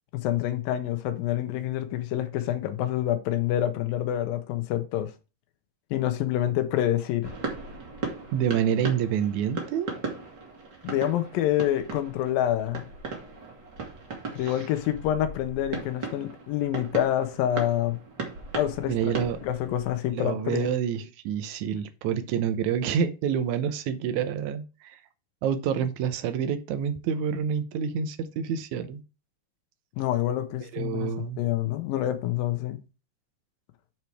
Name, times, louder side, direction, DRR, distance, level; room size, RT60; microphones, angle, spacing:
voice 1, 0.1-5.1 5.9-7.3 10.8-12.9 14.3-18.0 18.5-19.2 19.4-20.7 30.0-32.8, left 12 dB, 90° left, 2.7 m, -27 dB
sound 1, 7.2-19.9, right 3 dB, 35° right, 2.0 m, -37 dB
voice 2, 8.3-9.9 14.4-14.5 18.9-19.4 20.1-25.0 25.4-29.0 30.7-31.4, right 8 dB, 70° right, 2.0 m, -28 dB
8.3 x 4.6 x 4.6 m
omnidirectional pair, 4.0 m